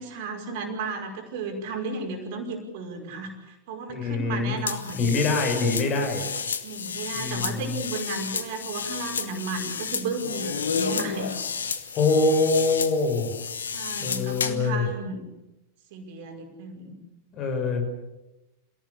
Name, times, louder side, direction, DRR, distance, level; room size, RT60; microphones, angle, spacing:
voice 1, 0.0-5.1 6.6-11.3 13.7-15.2 15.9-17.0, right 3 dB, 50° right, 4 dB, 5.4 m, -34 dB
voice 2, 3.9-4.6 4.9-6.2 7.1-7.8 11.9-13.3 14.0-14.9 17.3-17.8, left 3 dB, 35° left, 4 dB, 6.6 m, -24 dB
sound 1, 4.7-14.7, left 6 dB, 70° left, 1.6 m, -31 dB
27.5 x 17.5 x 8.5 m, 1.0 s
figure-of-eight pair, 90°, 0 cm